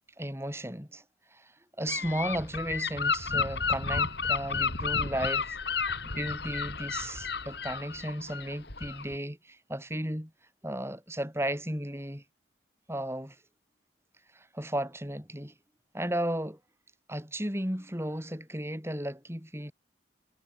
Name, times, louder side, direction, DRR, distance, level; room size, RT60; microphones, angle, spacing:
voice 1, 0.2-1.0 1.3-5.6 6.1-10.3 10.6-12.2 12.9-13.4 14.3-15.5 15.9-16.6 17.1-19.7, right 1 dB, 15° right, 6.4 m, -34 dB
Gull seagull / Wind, 1.9-9.2, left 5 dB, 55° left, 3.1 m, -32 dB
head